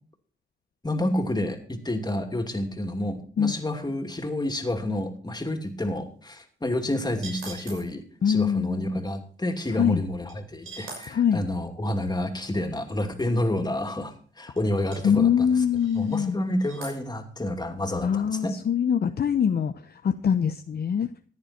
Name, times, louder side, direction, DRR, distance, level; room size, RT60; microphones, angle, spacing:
voice 1, 0.8-15.6 15.9-18.5, left 1 dB, 20° left, 4 dB, 2.8 m, -29 dB
sound 1, 7.2-7.9 10.3-10.4 10.6-11.1 13.7-13.8 14.1-14.2 14.6-14.7 14.9-15.0 15.7-16.2 16.6-17.0, right 3 dB, 85° right, 6.3 m, -41 dB
voice 2, 8.2-8.8 9.8-10.0 11.1-11.4 15.0-16.4 18.0-21.1, left 7 dB, 50° left, 8 dB, 0.8 m, -23 dB
15.0 x 9.8 x 4.5 m, 0.43 s
cardioid pair, 75°, 21 cm